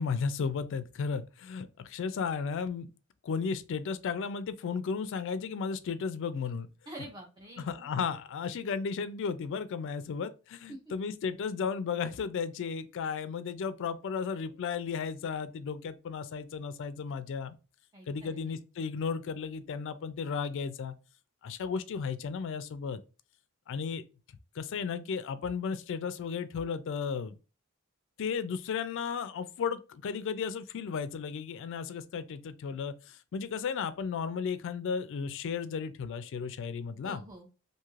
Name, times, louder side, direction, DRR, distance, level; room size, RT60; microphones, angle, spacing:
voice 1, 0.0-2.9 3.2-6.7 7.6-17.6 18.1-20.9 21.4-23.0 23.7-24.0 24.6-27.3 28.2-37.2, left 6 dB, 60° left, 0.3 m, -34 dB
voice 2, 6.9-7.9 10.7-10.8 17.9-18.6 37.0-37.5, right 1 dB, 20° right, 0.5 m, -46 dB
2.5 x 2.4 x 3.1 m
head